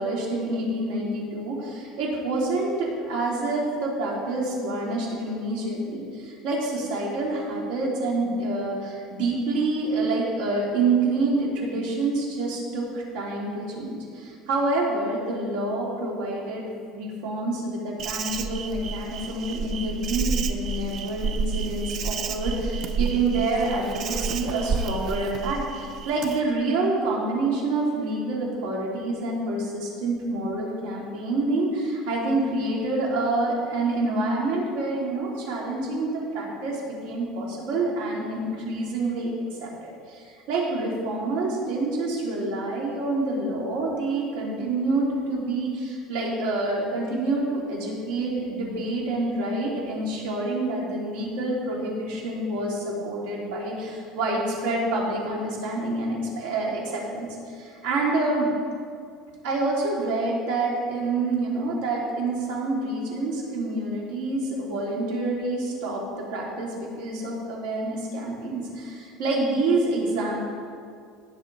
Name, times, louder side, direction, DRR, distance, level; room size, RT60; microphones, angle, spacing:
voice 1, 0.0-16.6 16.9-39.3 39.6-58.5 59.4-70.4, right 2 dB, 85° right, -3 dB, 3.3 m, -27 dB
Insect, 18.0-26.4, right 5 dB, 35° right, 0.5 m, -30 dB
18.0 x 6.8 x 4.1 m, 2.2 s
cardioid pair, 175°, 0 cm